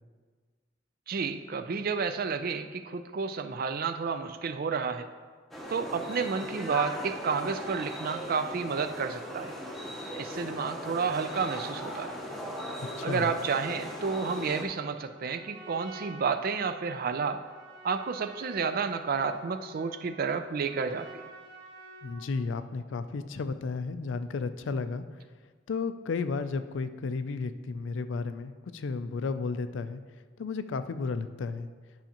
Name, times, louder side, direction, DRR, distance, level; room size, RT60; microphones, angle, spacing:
voice 1, 1.1-5.1 5.7-9.5 10.1-12.1 13.0-17.4 17.8-21.1, right 5 dB, 50° right, 9 dB, 0.4 m, -31 dB
sound 1, 5.5-14.6, equal, ahead, 0.8 m, -38 dB
voice 2, 13.0-13.3 22.0-25.0 25.7-30.0 30.4-31.7, left 4 dB, 75° left, 11 dB, 0.4 m, -33 dB
Trumpet, 15.1-22.4, right 2 dB, 70° right, 1.3 m, -50 dB
10.5 x 5.7 x 2.9 m, 1.5 s
head